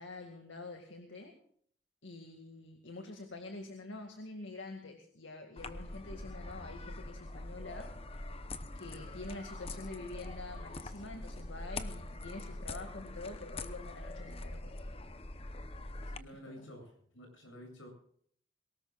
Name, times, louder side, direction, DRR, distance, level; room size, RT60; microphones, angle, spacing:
voice 1, 0.0-1.3 2.0-7.9 8.7-14.7 16.3-16.6, left 2 dB, 75° left, 4 dB, 2.2 m, -46 dB
sound 1, 5.6-16.2, left 2 dB, 30° left, 0.9 m, -43 dB
voice 2, 16.0-17.9, equal, 90° left, 3 dB, 7.9 m, -51 dB
22.5 x 19.0 x 2.5 m, 0.62 s
head